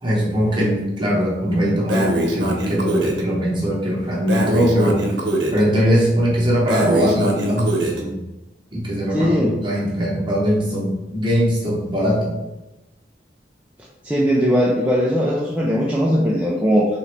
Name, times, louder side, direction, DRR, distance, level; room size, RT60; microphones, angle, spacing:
voice 1, 0.0-5.1 5.5-8.3 8.7-12.4, equal, 25° right, -4 dB, 0.9 m, -20 dB
Breathing, 1.9-3.2 4.3-5.6 6.7-8.0, right 1 dB, 90° right, 0.7 m, -23 dB
voice 2, 9.1-9.5 14.0-16.9, equal, 5° right, -5 dB, 0.4 m, -19 dB
3.8 x 3.0 x 3.2 m, 1.0 s
head